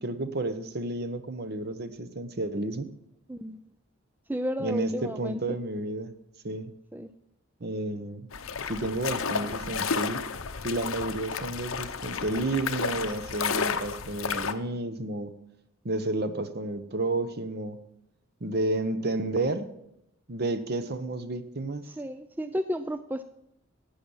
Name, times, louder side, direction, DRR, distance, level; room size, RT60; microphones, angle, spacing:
voice 1, 0.0-2.9 4.6-6.1 6.4-6.7 7.6-8.2 8.7-10.2 10.6-15.3 15.8-17.8 18.4-19.7 20.3-21.9, right 2 dB, 50° right, 11 dB, 0.9 m, -31 dB
voice 2, 4.3-5.4 6.9-7.1 21.9-23.2, equal, 10° right, 10 dB, 0.3 m, -32 dB
sound 1, 8.3-14.5, left 6 dB, 75° left, 0.8 m, -32 dB
11.5 x 8.8 x 5.5 m, 0.80 s
head